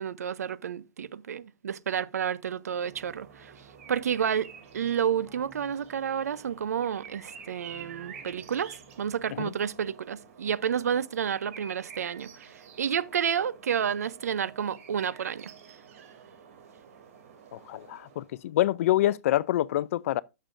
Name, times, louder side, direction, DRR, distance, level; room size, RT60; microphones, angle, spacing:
voice 1, 0.0-3.5 3.9-15.5, right 8 dB, 85° right, 0.6 m, -30 dB
sound 1, 2.5-18.5, right 7 dB, 65° right, 2.8 m, -50 dB
Keyboard (musical), 2.8-9.7, right 3 dB, 15° right, 4.0 m, -59 dB
voice 2, 17.5-20.2, left 14 dB, 60° left, 0.5 m, -26 dB
13.5 x 6.7 x 2.6 m
hypercardioid pair, 130°, 8 cm